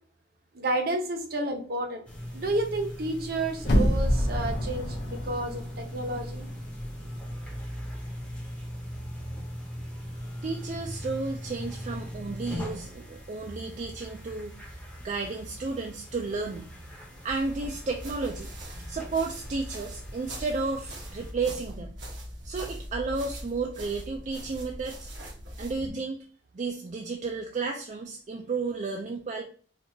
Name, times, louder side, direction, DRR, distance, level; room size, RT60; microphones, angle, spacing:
voice 1, 0.5-2.0 2.3-6.5 25.8-26.0, right 2 dB, 55° right, 4 dB, 0.7 m, -31 dB
sound 1, 2.1-21.3, equal, 5° left, 0.7 m, -40 dB
sound 2, 3.6-6.5 6.9-7.0, equal, 60° left, 0.8 m, -27 dB
voice 2, 10.4-14.8 15.0-16.7 17.2-18.5 18.9-22.0 22.4-25.1 25.6-26.3 26.5-29.4, right 4 dB, 40° right, 2 dB, 0.4 m, -32 dB
sound 3, 17.3-25.9, equal, 90° right, 1.1 m, -41 dB
4.4 x 2.4 x 2.7 m, 0.43 s
head